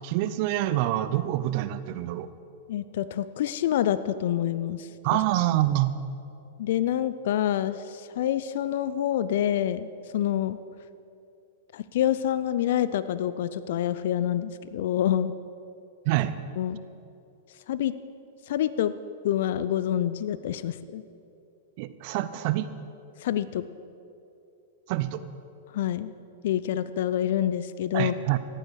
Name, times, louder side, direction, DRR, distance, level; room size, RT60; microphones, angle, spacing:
voice 1, 0.0-2.3 5.0-5.9 16.0-16.3 21.8-22.7 24.9-25.2 27.9-28.4, right 14 dB, 50° right, 13 dB, 0.7 m, -26 dB
voice 2, 2.7-5.2 6.6-10.6 11.7-15.3 16.6-16.8 17.7-17.9 18.5-18.9 19.2-21.0 23.2-23.6 25.7-26.1 26.4-28.2, left 11 dB, 60° left, 15 dB, 0.5 m, -27 dB
15.0 x 9.0 x 6.3 m, 2.6 s
hypercardioid pair, 105°, 0 cm